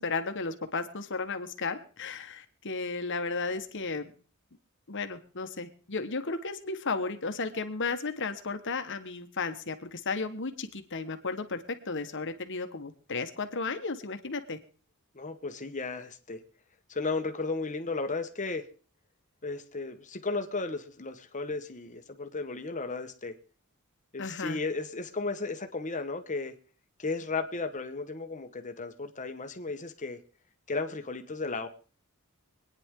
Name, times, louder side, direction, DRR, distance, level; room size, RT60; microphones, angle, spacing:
voice 1, 0.0-4.1 4.9-14.6 24.2-24.6, left 4 dB, 55° left, 8 dB, 1.4 m, -34 dB
voice 2, 15.1-16.4 16.9-18.6 19.4-23.3 24.1-26.5 27.0-30.2 30.7-31.7, left 3 dB, 35° left, 7 dB, 1.3 m, -34 dB
25.0 x 9.8 x 3.8 m, 0.39 s
head